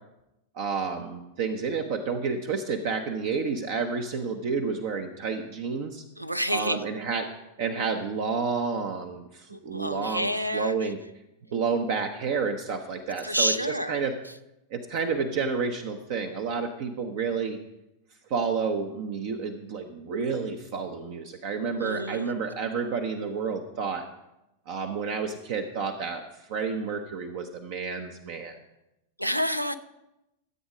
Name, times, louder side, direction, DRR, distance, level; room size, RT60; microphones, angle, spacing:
voice 1, 0.5-6.0 6.5-7.3 7.6-11.0 11.5-13.5 13.9-14.1 14.7-17.6 18.3-24.1 24.7-26.2 26.5-28.6, right 5 dB, 50° right, 5 dB, 0.9 m, -30 dB
voice 2, 6.2-6.8 9.5-10.9 13.2-14.0 21.8-22.3 29.2-29.8, equal, 90° right, 12 dB, 0.7 m, -29 dB
14.0 x 8.1 x 5.0 m, 0.92 s
figure-of-eight pair, 90°, 0 cm